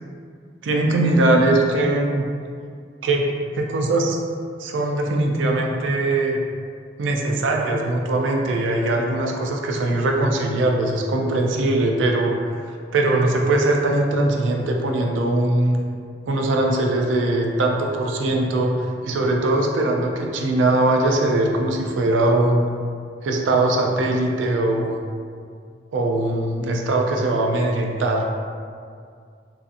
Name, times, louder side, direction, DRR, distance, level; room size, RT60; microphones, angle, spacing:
voice 1, 0.6-2.2 3.0-3.3 3.5-4.2 4.6-6.4 7.0-12.4 12.9-15.8 16.3-22.8 23.2-25.0 25.9-28.4, right 2 dB, 90° right, 1 dB, 0.4 m, -21 dB
2.6 x 2.4 x 2.4 m, 2.2 s
head